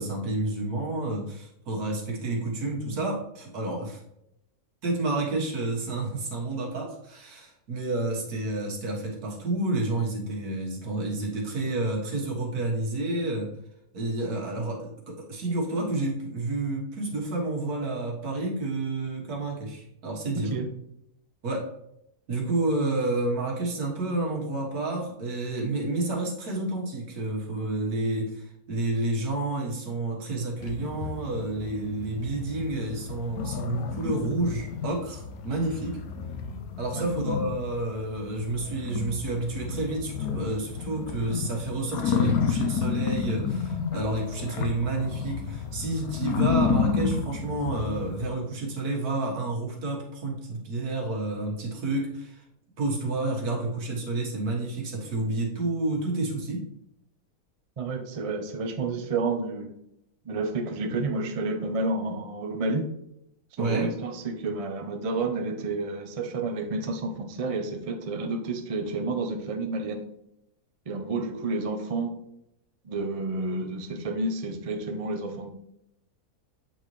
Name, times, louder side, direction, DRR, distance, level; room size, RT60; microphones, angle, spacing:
voice 1, 0.0-4.0 4.8-13.5 13.9-20.5 21.4-21.7 22.3-36.0 36.8-52.4 52.8-56.6 63.6-63.9, right 2 dB, 80° right, -1 dB, 1.9 m, -30 dB
sound 1, 30.6-48.3, left 6 dB, 75° left, 1.1 m, -31 dB
voice 2, 57.8-59.7 60.3-62.9 63.6-70.0 70.9-72.1 72.8-75.5, right 3 dB, 50° right, 5 dB, 0.4 m, -30 dB
8.0 x 4.1 x 3.1 m, 0.79 s
omnidirectional pair, 1.6 m